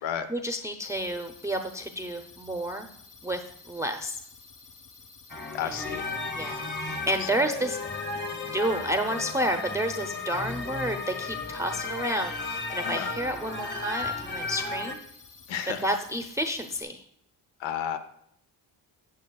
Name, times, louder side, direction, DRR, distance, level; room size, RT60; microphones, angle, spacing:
voice 1, 0.3-2.9 3.2-4.2 5.6-6.0 6.3-7.8 8.5-15.0 15.8-17.0, right 1 dB, 5° right, 6 dB, 0.6 m, -30 dB
sound 1, 0.8-16.8, left 4 dB, 45° left, 4.0 m, -52 dB
sound 2, 5.3-14.9, left 3 dB, 25° left, 1.3 m, -34 dB
voice 2, 5.5-6.1 7.2-7.3 10.4-10.5 12.8-13.1 15.5-15.9 17.6-18.0, left 9 dB, 75° left, 11 dB, 0.9 m, -32 dB
13.0 x 8.5 x 2.3 m, 0.71 s
cardioid pair, 80°, 47 cm